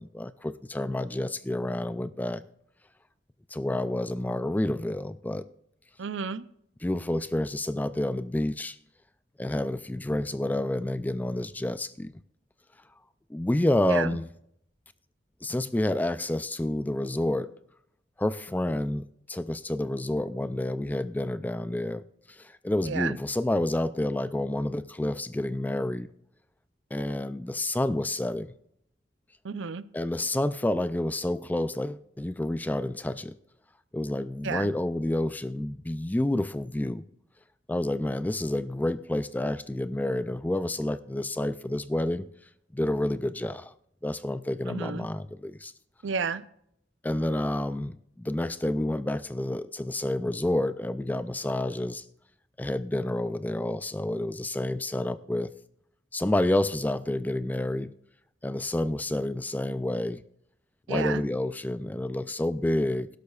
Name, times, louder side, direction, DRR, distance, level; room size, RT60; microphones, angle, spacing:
voice 1, 0.0-2.4 3.5-5.4 6.8-8.8 9.4-12.1 13.3-14.3 15.4-17.5 18.2-22.0 22.3-26.1 26.9-28.5 29.9-33.4 33.9-37.0 37.7-42.3 42.7-43.7 44.0-45.7 47.0-52.1 52.6-55.5 56.1-57.9 58.4-60.2 60.9-63.1, left 1 dB, 10° left, 0.3 m, -29 dB
voice 2, 6.0-6.4 13.9-14.1 22.8-23.2 29.4-29.8 34.4-34.7 44.7-45.1 46.0-46.4 60.9-61.2, right 5 dB, 75° right, 0.5 m, -31 dB
18.5 x 12.0 x 2.4 m
head